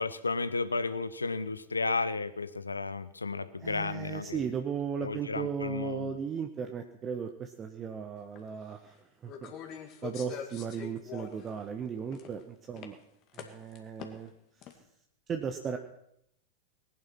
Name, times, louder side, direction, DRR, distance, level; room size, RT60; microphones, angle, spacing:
voice 1, 0.0-4.4 5.0-6.2, left 3 dB, 80° left, 14 dB, 0.9 m, -33 dB
voice 2, 3.6-13.0 13.3-14.3 14.6-14.8 15.3-15.8, right 7 dB, 25° right, 6 dB, 1.1 m, -36 dB
sound 1, 8.4-8.5 9.3-11.5 11.9-12.4 12.8-12.9 13.3-14.3 14.6-14.7, left 9 dB, 35° left, 2.2 m, -44 dB
19.5 x 10.5 x 6.0 m, 0.76 s
figure-of-eight pair, 90°, 0 cm